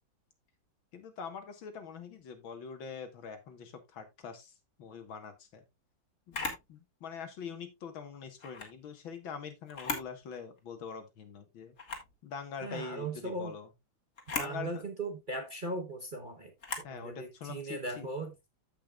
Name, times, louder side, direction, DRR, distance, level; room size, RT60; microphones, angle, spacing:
voice 1, 0.9-5.6 6.3-11.7 12.2-13.7 14.3-14.8 16.8-18.1, left 6 dB, 80° left, 2.3 m, -44 dB
Camera, 6.3-6.7 8.4-8.7 9.7-10.1 10.6-10.7 11.8-12.1 14.2-14.6 16.6-16.9, left 4 dB, 40° left, 2.1 m, -37 dB
voice 2, 12.6-13.6 14.4-18.3, right 2 dB, 35° right, 0.9 m, -38 dB
14.5 x 5.7 x 2.3 m
omnidirectional pair, 2.2 m